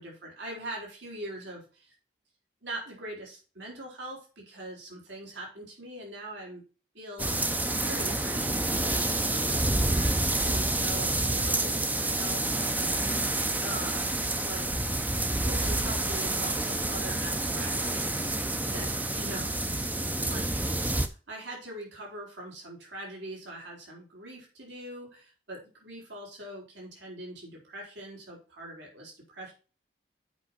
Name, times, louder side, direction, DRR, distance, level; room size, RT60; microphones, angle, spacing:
voice 1, 0.0-1.9 2.6-6.6 6.9-7.4 7.8-12.6 13.6-14.8 15.4-18.4 18.7-29.5, right 1 dB, 85° right, -2 dB, 3.9 m, -42 dB
sound 1, 7.2-21.1, right 2 dB, 10° right, 0.5 m, -28 dB
8.0 x 5.6 x 4.3 m, 0.34 s
head